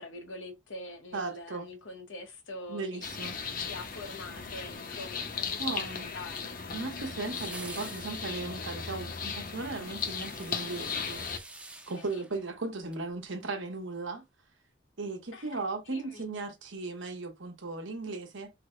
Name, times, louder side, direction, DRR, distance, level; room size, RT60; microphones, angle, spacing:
voice 1, 0.0-3.3 3.6-6.6 11.9-12.2 15.3-15.6 15.9-16.3, left 2 dB, 80° left, 1.0 m, -45 dB
voice 2, 1.1-1.7 2.7-3.3 5.6-6.1 6.7-11.2 11.6-14.2 15.0-18.5, right 3 dB, 80° right, 0.9 m, -37 dB
sound 1, 3.0-11.4, left 5 dB, 45° left, 0.6 m, -37 dB
sound 2, 3.8-4.7 7.2-13.1 13.4-13.5, right 2 dB, 5° right, 0.5 m, -49 dB
3.3 x 2.1 x 3.6 m
head